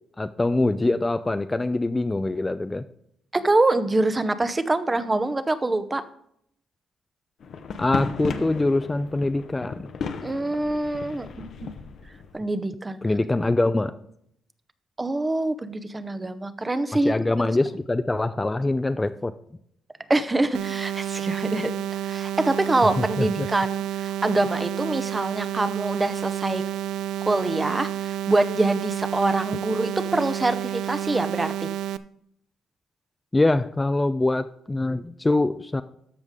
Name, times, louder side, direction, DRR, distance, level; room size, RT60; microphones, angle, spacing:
voice 1, 0.2-2.8 7.8-9.8 13.0-13.9 16.9-19.3 23.2-23.5 33.3-35.8, left 2 dB, 15° left, 11 dB, 0.4 m, -24 dB
voice 2, 3.3-6.0 10.2-11.7 12.3-13.0 15.0-17.6 20.1-26.6 27.2-31.7, right 2 dB, 20° right, 12 dB, 0.7 m, -25 dB
sound 1, 7.4-12.4, left 5 dB, 60° left, 0.8 m, -35 dB
sound 2, 20.5-32.0, right 11 dB, 85° right, 0.4 m, -30 dB
13.5 x 5.2 x 3.7 m, 0.70 s
cardioid pair, 90°, 0 cm